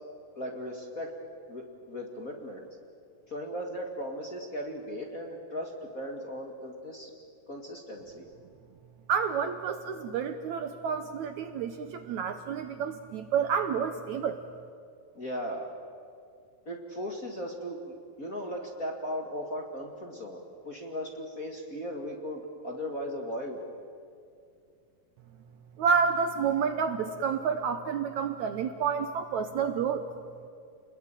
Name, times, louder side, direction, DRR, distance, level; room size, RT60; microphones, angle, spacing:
voice 1, 0.4-1.1 1.5-2.7 3.3-7.1 7.5-8.2 15.1-15.7 16.7-23.6, equal, 30° left, 1 dB, 2.0 m, -37 dB
voice 2, 9.1-14.4 25.8-30.1, right 6 dB, 70° right, 8 dB, 1.9 m, -29 dB
29.5 x 21.0 x 9.0 m, 2.4 s
omnidirectional pair, 4.0 m